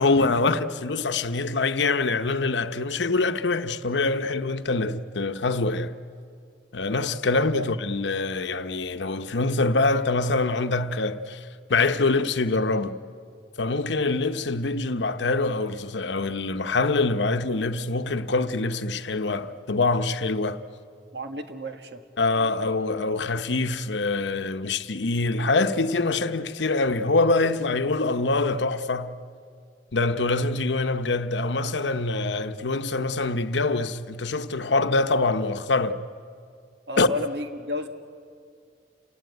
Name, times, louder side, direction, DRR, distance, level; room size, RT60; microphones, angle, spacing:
voice 1, 0.0-6.0 6.7-13.0 13.6-20.6 22.2-29.1 29.9-36.0 37.0-37.1, left 3 dB, 85° left, 0.8 m, -24 dB
voice 2, 21.1-22.0 36.9-37.9, left 2 dB, 70° right, 1.6 m, -32 dB
28.5 x 16.0 x 9.5 m
head